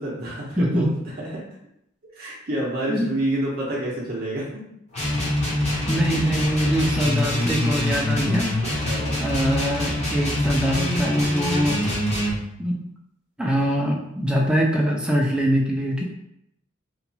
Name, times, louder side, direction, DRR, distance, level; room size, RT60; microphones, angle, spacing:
voice 1, 0.0-1.4 2.1-4.6 8.6-9.2 11.6-12.1, right 1 dB, 50° right, -5 dB, 0.6 m, -29 dB
voice 2, 0.6-0.9 2.9-3.1 5.9-11.8 12.6-12.8 13.4-16.0, equal, 5° right, -1 dB, 0.3 m, -23 dB
sound 1, 4.9-12.4, left 1 dB, 35° left, 0.8 m, -24 dB
2.9 x 2.2 x 2.7 m, 0.78 s
head